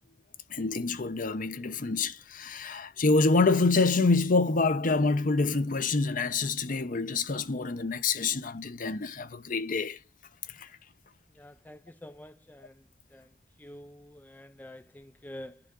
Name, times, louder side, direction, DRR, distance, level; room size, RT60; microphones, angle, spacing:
voice 1, 0.5-10.0 10.5-10.7, left 3 dB, 45° left, 0.7 m, -26 dB
voice 2, 11.4-12.8 13.1-13.3 13.6-15.6, left 1 dB, 10° left, 0.3 m, -47 dB
11.0 x 3.7 x 3.7 m
head